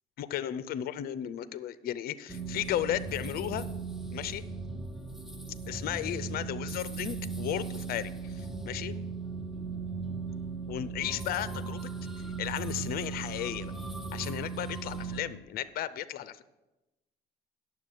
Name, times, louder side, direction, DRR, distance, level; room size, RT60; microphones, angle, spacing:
voice 1, 0.2-3.7 4.1-4.4 5.7-8.9 10.7-11.9 12.4-13.7 14.1-16.4, left 11 dB, 65° left, 15 dB, 0.5 m, -35 dB
sound 1, 2.3-15.2, right 4 dB, ahead, 0.9 m, -37 dB
9.3 x 7.3 x 6.4 m, 1.0 s
cardioid pair, 110°, 17 cm